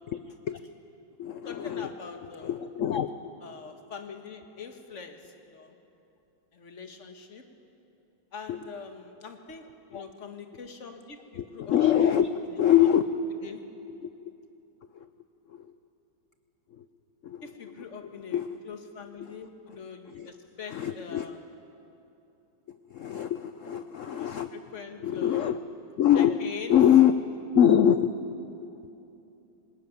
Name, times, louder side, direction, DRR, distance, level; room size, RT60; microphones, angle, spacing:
voice 1, 0.1-0.6 1.2-3.1 8.5-8.7 9.9-10.0 11.3-13.1 13.9-14.1 14.9-15.1 15.5-15.7 16.7-16.9 17.2-18.5 19.2-19.3 19.7-19.8 20.1-20.3 20.7-21.3 22.7-24.5 25.0-27.2 27.5-28.1 28.6-28.7, left 10 dB, 90° left, 10 dB, 0.6 m, -25 dB
voice 2, 1.4-2.5 3.4-5.8 6.5-7.5 8.3-12.2 13.4-13.7 17.4-18.4 18.6-21.4 24.2-25.5 26.1-26.8, left 6 dB, 40° left, 6 dB, 1.7 m, -43 dB
20.0 x 20.0 x 9.4 m, 2.9 s
omnidirectional pair, 2.1 m